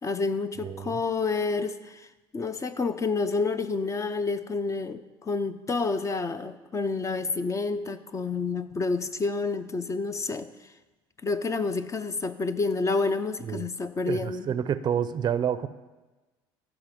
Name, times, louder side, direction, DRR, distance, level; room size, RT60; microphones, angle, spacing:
voice 1, 0.0-2.1 2.3-10.5 11.2-14.5, left 4 dB, 25° left, 12 dB, 0.6 m, -29 dB
voice 2, 0.6-1.0 13.5-13.6 14.1-15.7, right 8 dB, 35° right, 14 dB, 0.5 m, -28 dB
14.5 x 5.2 x 5.2 m, 1.2 s
supercardioid pair, 85°, 13 cm